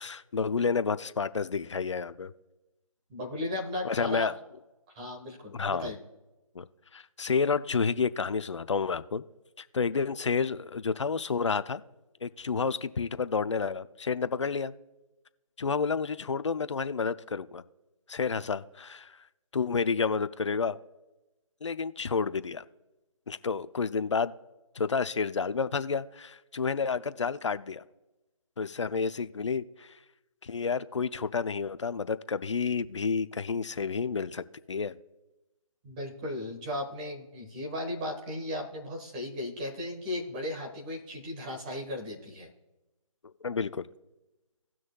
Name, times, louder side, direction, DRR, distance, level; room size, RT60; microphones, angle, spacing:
voice 1, 0.0-2.3 3.8-4.3 5.5-5.9 6.5-6.6 6.9-9.2 9.6-11.8 12.2-14.7 15.6-17.6 18.1-19.2 19.5-20.8 21.6-22.6 23.3-24.3 24.7-27.8 28.6-30.0 30.4-35.0 43.4-43.9, left 5 dB, 55° left, 14 dB, 0.6 m, -30 dB
voice 2, 3.1-4.3 4.9-6.0 35.8-42.5, left 1 dB, 15° right, 0 dB, 1.2 m, -36 dB
18.0 x 6.2 x 2.3 m, 1.0 s
figure-of-eight pair, 160°, 18 cm